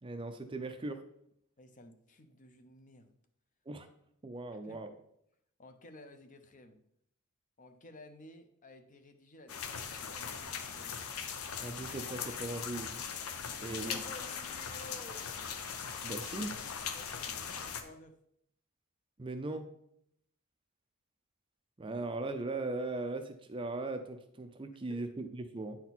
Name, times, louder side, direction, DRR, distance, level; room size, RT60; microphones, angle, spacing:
voice 1, 0.0-1.0 3.7-3.9 4.2-4.9 11.6-13.0 13.6-14.0 16.0-16.6 19.2-19.7 21.8-25.8, right 2 dB, 25° right, 8 dB, 0.5 m, -39 dB
voice 2, 1.6-3.1 4.5-4.9 5.6-6.8 7.6-11.1 13.7-15.3 16.9-18.2 24.9-25.0, left 2 dB, 35° left, 7 dB, 0.7 m, -53 dB
sound 1, 9.5-17.8, left 7 dB, 75° left, 0.7 m, -40 dB
9.1 x 4.4 x 4.1 m, 0.72 s
head